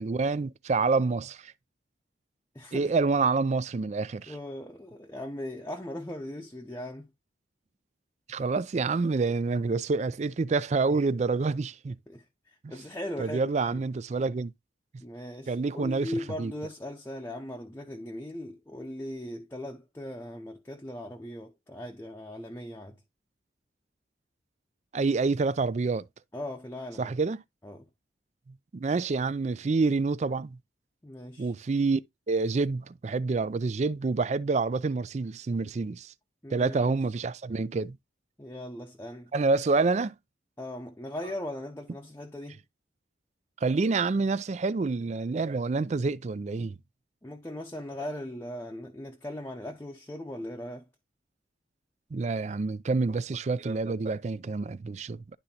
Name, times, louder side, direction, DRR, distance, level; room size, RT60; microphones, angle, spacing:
voice 1, 0.0-1.5 2.7-4.3 8.3-12.0 13.2-14.5 15.5-16.5 24.9-26.0 27.0-27.4 28.7-30.6 31.4-32.0 32.3-36.1 36.5-38.0 39.3-40.1 43.6-46.7 52.1-55.4, right 4 dB, 40° right, 0.4 m, -27 dB
voice 2, 2.5-3.0 4.3-7.1 12.1-13.8 15.0-23.0 26.3-27.1 27.6-27.9 31.0-31.5 36.4-36.9 38.4-39.3 40.6-42.6 47.2-50.9, left 1 dB, 15° left, 0.7 m, -39 dB
11.5 x 3.9 x 2.8 m
head